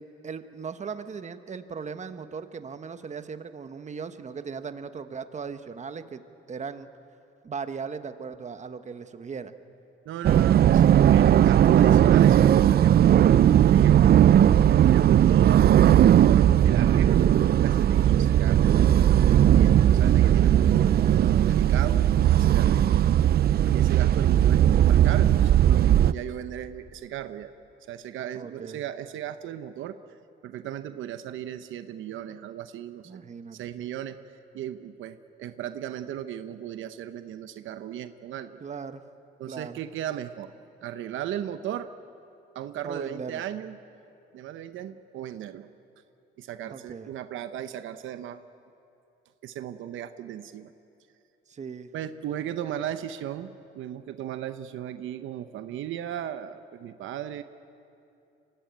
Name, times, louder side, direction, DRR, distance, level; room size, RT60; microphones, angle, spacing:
voice 1, 0.0-6.2 6.5-6.9 7.4-9.5 20.6-21.1 28.3-28.8 33.0-33.6 38.6-39.0 39.5-39.8 42.8-43.4 46.6-47.1 51.5-51.9, right 5 dB, 35° right, 10 dB, 1.2 m, -38 dB
voice 2, 10.0-14.0 14.9-23.0 23.6-27.5 27.9-30.2 30.4-33.2 33.5-38.6 39.4-40.5 40.8-41.9 42.5-43.8 44.3-45.7 46.4-48.4 49.4-50.7 51.9-57.4, right 10 dB, 80° right, 10 dB, 0.8 m, -36 dB
sound 1, 10.2-26.1, right 10 dB, 50° right, 0.5 m, -18 dB
24.5 x 16.0 x 9.3 m, 2.7 s
cardioid pair, 90°, 20 cm